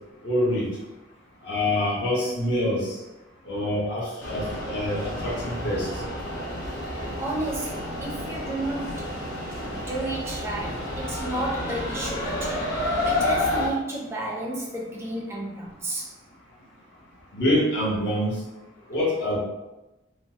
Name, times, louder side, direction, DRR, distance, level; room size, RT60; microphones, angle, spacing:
voice 1, 0.2-0.7 1.4-3.0 3.5-5.9 17.3-18.3 18.9-19.4, left 1 dB, 55° left, -6 dB, 1.0 m, -25 dB
sound 1, 4.2-13.7, left 1 dB, 80° left, 0.8 m, -30 dB
voice 2, 7.2-9.0 9.7-16.1, right 2 dB, 15° right, -3 dB, 0.5 m, -32 dB
3.1 x 2.0 x 2.7 m, 1.0 s
head